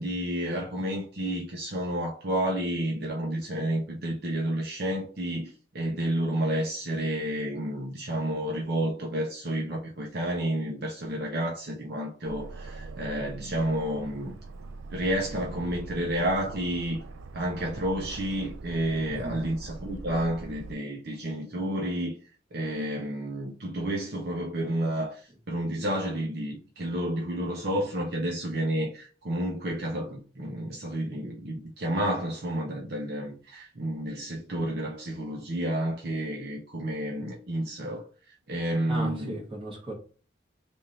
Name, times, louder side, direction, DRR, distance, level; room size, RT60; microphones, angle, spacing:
voice 1, 0.0-14.3 14.9-17.0 17.3-22.1 22.5-25.2 25.5-38.0 38.5-39.3, right 1 dB, 55° right, 0.7 m, -30 dB
Aircraft, 12.3-20.7, right 3 dB, 90° right, 0.4 m, -42 dB
voice 2, 38.9-39.9, right 1 dB, 25° right, 1.4 m, -35 dB
3.5 x 2.6 x 4.2 m
head